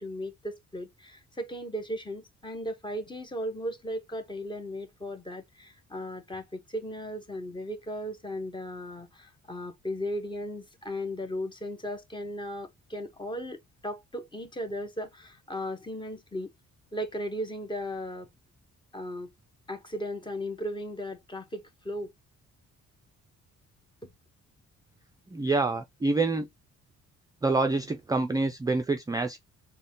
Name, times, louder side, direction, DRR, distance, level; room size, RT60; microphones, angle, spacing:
voice 1, 0.0-16.5 16.9-18.3 18.9-19.3 19.7-22.1 24.0-24.1, equal, 15° left, 0.9 m, -36 dB
voice 2, 25.3-26.5 27.4-29.4, right 3 dB, 15° right, 0.4 m, -27 dB
4.0 x 2.2 x 3.6 m
cardioid pair, 90°, 30 cm